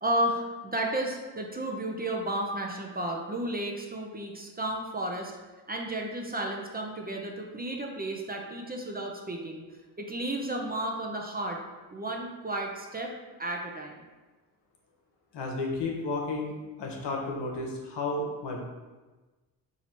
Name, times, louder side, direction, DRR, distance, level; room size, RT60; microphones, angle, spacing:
voice 1, 0.0-5.3 5.7-9.6 10.0-11.6 11.9-13.1 13.4-14.0, right 1 dB, 20° right, 1 dB, 0.6 m, -32 dB
voice 2, 15.3-16.5 16.8-18.6, left 2 dB, 70° left, 0 dB, 1.1 m, -32 dB
4.3 x 2.8 x 4.3 m, 1.2 s
cardioid pair, 85°, 43 cm